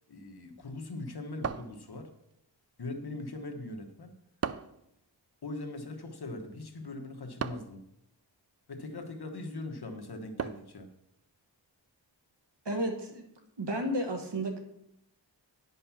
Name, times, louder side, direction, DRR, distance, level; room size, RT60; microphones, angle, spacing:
voice 1, 0.1-2.1 2.8-4.1 5.4-7.8 8.7-10.9, left 2 dB, 60° left, 3 dB, 1.4 m, -41 dB
sound 1, 1.4-2.3 4.4-4.9 7.4-7.8 10.4-10.8, right 7 dB, 40° right, 0.4 m, -36 dB
voice 2, 12.6-13.3 13.6-14.6, right 1 dB, 65° right, 4 dB, 1.7 m, -32 dB
10.0 x 5.5 x 5.9 m, 0.79 s
wide cardioid pair, 100°, 44 cm